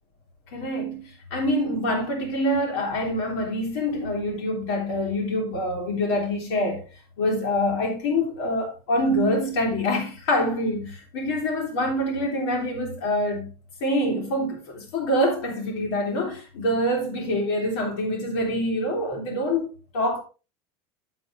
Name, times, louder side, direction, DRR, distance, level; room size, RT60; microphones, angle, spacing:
voice 1, 0.5-6.8 7.2-13.5 13.8-20.2, left 1 dB, 85° left, 2.8 m, -25 dB
8.4 x 7.8 x 3.3 m
supercardioid pair, 135°, 13 cm